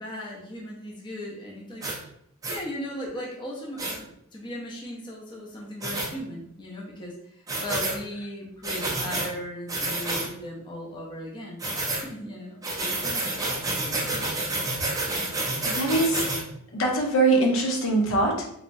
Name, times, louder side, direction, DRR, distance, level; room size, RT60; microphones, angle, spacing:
voice 1, 0.0-1.9 2.5-11.6 11.9-14.2, equal, 20° left, -3 dB, 0.6 m, -37 dB
sound 1, 1.8-2.0 2.4-2.6 3.8-4.0 5.8-6.1 7.5-8.0 8.6-9.3 9.7-10.3 11.6-12.0 12.6-16.4, right 2 dB, 15° right, 0.5 m, -29 dB
voice 2, 15.6-16.3 16.7-18.4, right 2 dB, 75° left, 0 dB, 0.7 m, -22 dB
3.1 x 2.8 x 2.6 m, 0.74 s
head